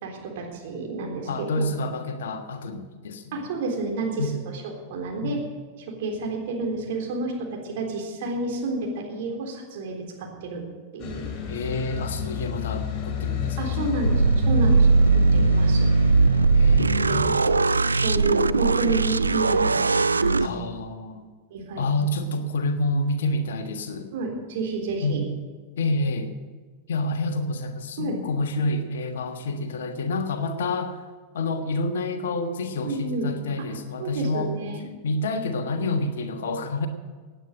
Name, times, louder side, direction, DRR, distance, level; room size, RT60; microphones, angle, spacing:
voice 1, 0.0-1.6 3.3-4.3 4.6-5.4 5.9-10.6 10.9-11.3 13.6-15.9 16.9-17.2 17.4-17.6 17.9-20.6 21.5-21.9 24.1-25.2 28.0-28.2 32.8-33.3 34.0-34.8, right 3 dB, 55° right, 0 dB, 3.6 m, -30 dB
voice 2, 1.2-3.5 4.2-4.4 5.2-5.3 11.5-13.9 16.5-17.4 20.4-21.2 21.8-24.1 25.0-25.2 25.8-26.3 26.9-31.0 31.3-34.5 35.0-36.9, left 2 dB, 60° left, 7 dB, 1.5 m, -28 dB
sound 1, 11.0-17.3, left 7 dB, 35° left, 2.4 m, -31 dB
sound 2, 14.0-20.5, right 3 dB, 80° right, 0.3 m, -19 dB
17.0 x 9.2 x 6.5 m, 1.5 s
figure-of-eight pair, 90°, 0 cm